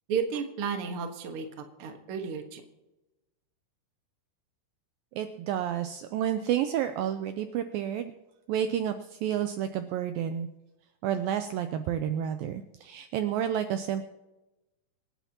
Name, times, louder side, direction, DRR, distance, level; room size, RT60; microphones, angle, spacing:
voice 1, 0.1-1.5 1.8-2.6, right 6 dB, 65° right, 5 dB, 1.4 m, -32 dB
voice 2, 5.1-8.1 8.5-10.5 11.0-14.1, right 10 dB, 85° right, 9 dB, 2.1 m, -30 dB
26.5 x 10.0 x 2.9 m, 1.0 s
omnidirectional pair, 4.7 m